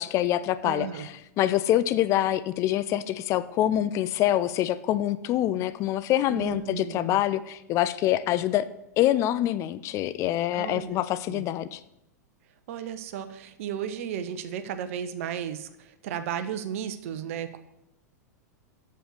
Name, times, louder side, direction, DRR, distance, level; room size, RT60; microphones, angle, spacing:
voice 1, 0.0-8.7 9.0-11.8, left 13 dB, 35° left, 14 dB, 0.4 m, -25 dB
voice 2, 0.6-1.1 6.3-7.2 10.5-11.0 11.3-11.4 12.7-17.6, right 9 dB, 50° right, 10 dB, 0.9 m, -34 dB
7.8 x 7.1 x 6.3 m, 0.88 s
figure-of-eight pair, 90°, 9 cm